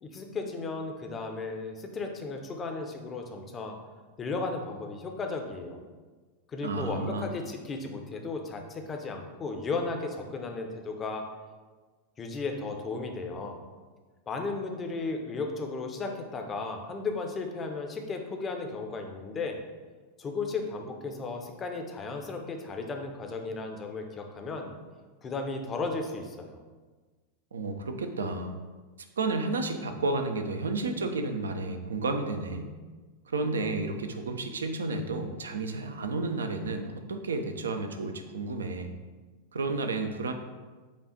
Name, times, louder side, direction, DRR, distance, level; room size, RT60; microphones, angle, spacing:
voice 1, 0.0-3.8 4.2-5.8 6.5-11.2 12.2-13.6 14.3-19.6 20.2-24.7 25.2-26.6, left 3 dB, 25° left, 4 dB, 0.6 m, -35 dB
voice 2, 6.6-7.3 27.5-28.6 29.2-32.7 33.3-38.9 39.5-40.3, right 3 dB, 70° right, 6 dB, 0.4 m, -31 dB
5.1 x 2.4 x 3.9 m, 1.3 s
figure-of-eight pair, 90°, 0 cm